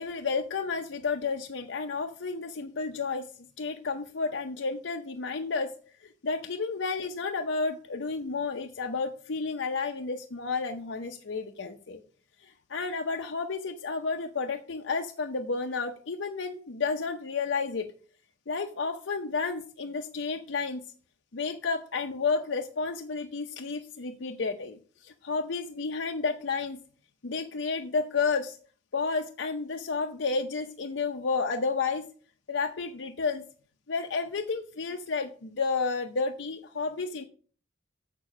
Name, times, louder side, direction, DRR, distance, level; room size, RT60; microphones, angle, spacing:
voice 1, 0.0-3.3 3.6-5.7 6.0-12.0 12.4-17.9 18.5-20.8 21.3-26.8 27.2-28.6 28.9-32.1 32.5-33.4 33.9-37.2, left 4 dB, 80° left, 5 dB, 0.7 m, -31 dB
7.5 x 6.6 x 6.1 m, 0.43 s
head